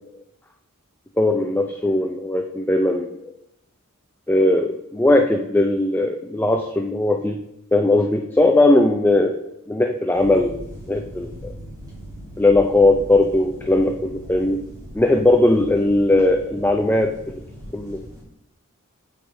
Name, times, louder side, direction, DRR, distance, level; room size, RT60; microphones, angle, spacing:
voice 1, 1.2-3.3 4.3-7.4 7.7-9.4 9.7-11.5 12.4-14.6 14.9-17.4 17.7-18.0, left 2 dB, 10° left, 4 dB, 0.4 m, -19 dB
sound 1, 10.1-18.2, equal, 15° right, 3.3 m, -39 dB
8.5 x 6.5 x 3.3 m, 0.82 s
head